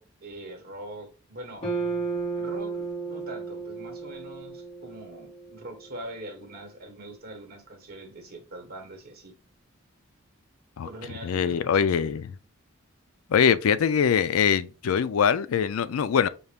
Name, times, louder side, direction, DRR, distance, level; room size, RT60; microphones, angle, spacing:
voice 1, 0.0-1.7 2.3-9.3 10.8-11.9, right 1 dB, 50° right, 1.4 m, -43 dB
sound 1, 1.6-5.9, right 4 dB, 30° left, 1.5 m, -33 dB
voice 2, 11.2-12.4 13.3-16.3, left 7 dB, 75° left, 0.4 m, -23 dB
5.5 x 2.4 x 3.4 m
head